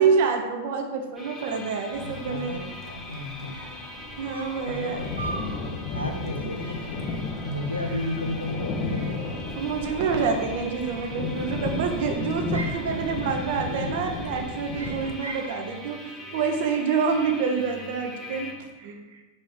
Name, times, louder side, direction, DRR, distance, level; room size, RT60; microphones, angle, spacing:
voice 1, 0.0-2.5 4.2-5.0 9.6-18.5 18.8-19.2, right 5 dB, 50° right, 4 dB, 0.8 m, -27 dB
sound 1, 1.2-18.5, left 2 dB, 5° left, 1.2 m, -42 dB
sound 2, 1.9-15.1, left 3 dB, 35° left, 0.7 m, -34 dB
voice 2, 2.0-3.6 4.7-5.1 5.8-9.4 13.2-13.9, left 1 dB, 85° left, 3 dB, 0.7 m, -33 dB
sound 3, 3.5-3.9 4.3-4.7 5.2-5.5 5.9-6.2 6.6-7.0 7.8-8.6 8.9-9.6 10.8-11.5 11.9-12.9 13.4-13.7 14.0-14.4 14.7-15.6, right 3 dB, 80° right, 0.8 m, -41 dB
5.1 x 4.2 x 4.9 m, 1.2 s
figure-of-eight pair, 90°, 0 cm